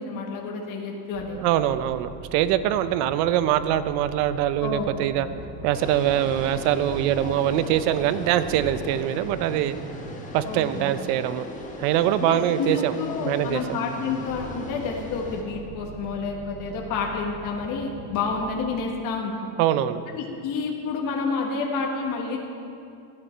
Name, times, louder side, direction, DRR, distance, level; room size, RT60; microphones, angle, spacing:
voice 1, 0.0-1.4 4.6-4.9 5.1-5.3 10.4-10.9 12.2-19.5 20.1-22.4, left 4 dB, 45° left, 0 dB, 1.4 m, -29 dB
sound 1, 1.1-19.2, right 3 dB, 45° right, 1.2 m, -41 dB
voice 2, 1.4-5.3 5.6-9.8 10.3-11.5 11.8-12.9 13.3-13.8 19.6-20.0, right 11 dB, 75° right, 13 dB, 0.7 m, -23 dB
sound 2, 5.7-15.4, left 1 dB, 15° left, 1.1 m, -39 dB
13.0 x 9.0 x 4.5 m, 2.5 s
cardioid pair, 155°, 45 cm